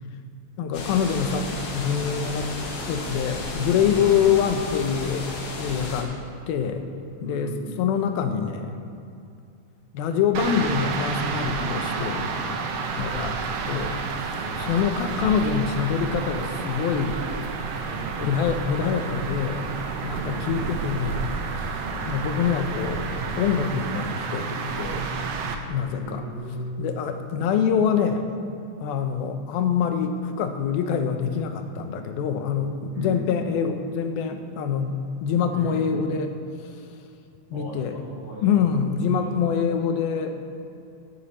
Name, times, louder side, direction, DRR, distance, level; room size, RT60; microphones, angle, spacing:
voice 1, 0.6-5.3 5.6-6.1 6.5-6.9 7.2-8.8 9.9-12.6 13.0-13.4 13.7-17.2 18.2-19.7 20.0-21.8 22.1-23.1 23.4-25.1 25.7-26.2 26.8-28.2 28.8-36.3 36.6-36.8 37.5-38.0 38.4-40.4, left 7 dB, 85° left, 6 dB, 2.8 m, -25 dB
sound 1, 0.7-6.0, left 2 dB, 60° left, 3.0 m, -33 dB
voice 2, 3.9-4.2 7.2-7.6 14.4-14.8 17.8-18.2 20.2-20.7 21.7-22.1 25.6-26.9 32.9-33.4 35.5-35.8 37.5-39.6, right 1 dB, 45° right, -13 dB, 4.3 m, -38 dB
sound 2, 10.3-25.5, right 5 dB, 80° right, 1.4 m, -30 dB
16.5 x 10.5 x 4.3 m, 2.6 s
omnidirectional pair, 4.2 m